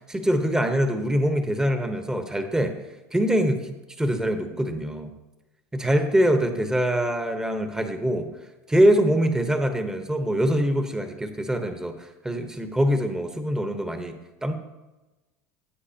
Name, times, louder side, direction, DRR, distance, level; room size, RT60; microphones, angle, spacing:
voice 1, 0.1-2.7 3.1-5.1 5.7-8.3 8.7-14.5, equal, 10° right, 7 dB, 1.1 m, -24 dB
15.5 x 8.1 x 2.9 m, 1.1 s
supercardioid pair, 100°, 8 cm